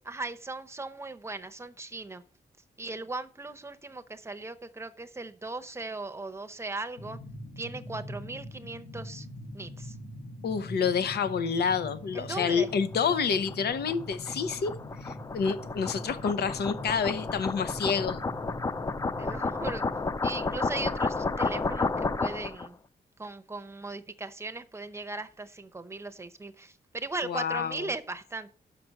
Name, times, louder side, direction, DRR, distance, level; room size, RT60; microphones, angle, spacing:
voice 1, 0.1-2.2 2.8-7.2 7.6-9.3 9.5-10.0 12.1-12.7 19.2-19.8 20.2-22.8 23.2-28.5, right 3 dB, 15° right, 0.7 m, -38 dB
sound 1, 7.0-20.0, left 1 dB, 65° left, 2.0 m, -43 dB
voice 2, 10.4-14.7 15.0-18.2 27.2-27.9, left 6 dB, 80° left, 0.8 m, -28 dB
sound 2, 12.7-22.7, left 3 dB, 20° left, 0.4 m, -32 dB
6.0 x 5.9 x 6.3 m
wide cardioid pair, 125°, 16 cm